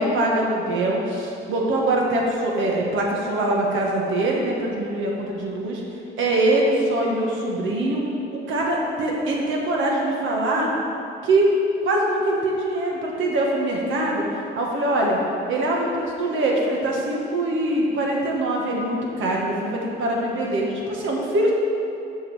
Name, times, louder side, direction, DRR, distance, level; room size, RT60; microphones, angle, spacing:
voice 1, 0.0-5.8 6.2-8.0 8.3-10.7 11.2-11.5 11.8-14.2 14.5-15.2 15.5-21.5, right 1 dB, 80° right, -2 dB, 1.6 m, -23 dB
7.2 x 5.3 x 6.1 m, 2.7 s
cardioid pair, 90°, 20 cm